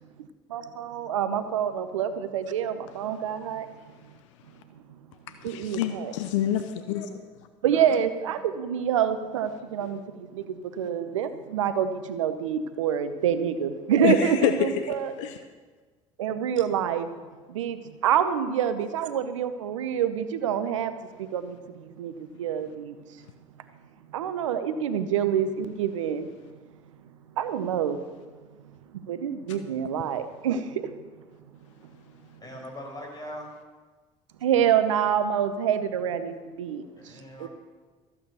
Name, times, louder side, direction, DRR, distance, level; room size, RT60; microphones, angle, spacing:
voice 1, 0.2-3.7 4.1-4.2 4.7-5.0 5.4-6.1 7.6-15.1 16.2-17.1 17.5-20.9 21.2-23.2 24.1-26.3 27.4-28.0 28.9-30.9 31.8-31.9 34.4-37.5, right 8 dB, 85° right, 11 dB, 0.7 m, -27 dB
voice 2, 5.4-7.2 14.0-15.4, left 10 dB, 80° left, 9 dB, 0.8 m, -27 dB
voice 3, 32.4-33.5 37.0-37.5, equal, 25° left, 2 dB, 5.1 m, -40 dB
14.5 x 8.5 x 6.7 m, 1.4 s
hypercardioid pair, 60°, 16 cm